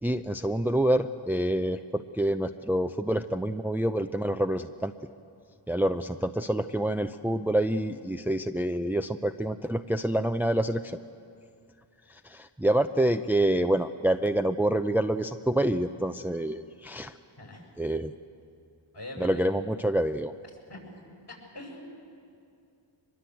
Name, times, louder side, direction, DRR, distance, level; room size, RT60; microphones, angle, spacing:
voice 1, 0.0-4.9 5.7-11.0 12.1-17.2 17.8-18.1 19.2-20.3, right 1 dB, 5° right, 9 dB, 0.6 m, -27 dB
voice 2, 17.4-17.7 18.9-19.5 20.7-21.1 21.5-21.9, left 1 dB, 55° left, 0 dB, 7.1 m, -42 dB
23.5 x 22.0 x 7.9 m, 2.4 s
cardioid pair, 50°, 49 cm